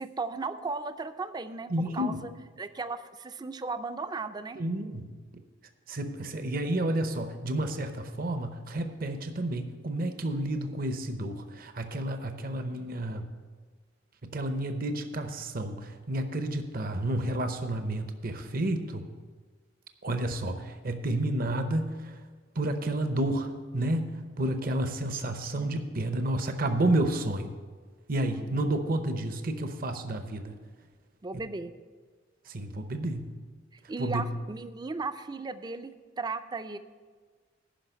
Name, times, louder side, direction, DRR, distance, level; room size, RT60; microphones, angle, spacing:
voice 1, 0.0-2.3 2.6-4.6 28.3-28.7 31.2-31.7 33.9-36.8, right 3 dB, 20° right, 11 dB, 0.4 m, -36 dB
voice 2, 1.7-2.2 4.6-5.1 5.9-13.3 14.2-19.0 20.0-22.2 22.6-27.5 28.1-30.5 32.5-33.3 34.0-34.3, right 1 dB, 50° right, 7 dB, 0.7 m, -30 dB
10.0 x 5.7 x 8.1 m, 1.5 s
head